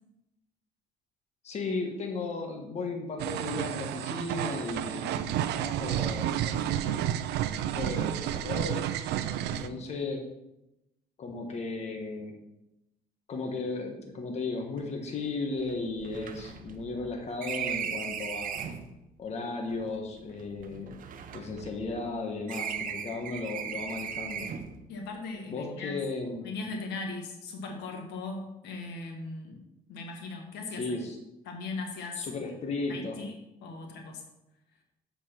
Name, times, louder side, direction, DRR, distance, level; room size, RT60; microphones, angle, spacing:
voice 1, 1.4-7.2 7.5-8.9 9.5-10.2 11.2-12.3 13.3-18.7 19.2-20.9 21.3-24.5 25.5-26.5 30.7-31.2 32.1-33.2, left 3 dB, 40° left, 2 dB, 1.3 m, -35 dB
sound 1, 3.2-9.7, right 11 dB, 80° right, 0.5 m, -31 dB
sound 2, 14.8-14.9 15.1-15.2 15.6-18.9 19.7-22.1 22.5-24.8, right 8 dB, 55° right, 0.8 m, -38 dB
voice 2, 24.9-25.9 26.4-29.6 29.9-31.0 31.4-32.3 32.9-33.3 33.6-34.2, left 3 dB, 80° left, 2 dB, 1.7 m, -38 dB
7.2 x 4.6 x 5.9 m, 0.91 s
cardioid pair, 110°, 17 cm